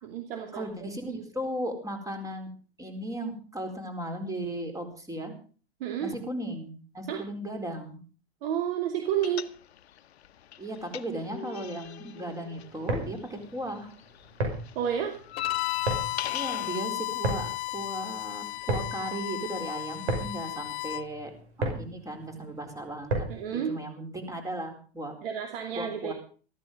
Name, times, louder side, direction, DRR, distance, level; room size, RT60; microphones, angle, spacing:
voice 1, 0.0-0.9 5.8-6.1 7.1-7.2 8.4-9.4 14.7-15.2 23.3-23.8 25.2-26.1, right 9 dB, 65° right, 4 dB, 2.7 m, -30 dB
voice 2, 0.5-2.5 2.8-5.3 6.0-8.0 10.6-13.9 16.3-21.3 21.6-23.2 23.5-25.1 25.7-26.1, right 1 dB, 10° right, 6 dB, 4.2 m, -36 dB
sound 1, 9.2-10.0 10.2-13.6 13.9-16.8, left 12 dB, 80° left, 1.1 m, -38 dB
sound 2, 12.7-23.5, right 2 dB, 80° right, 5.8 m, -34 dB
Bowed string instrument, 15.4-21.0, left 20 dB, 30° left, 0.6 m, -34 dB
14.5 x 13.5 x 5.3 m, 0.39 s
hypercardioid pair, 115°, 32 cm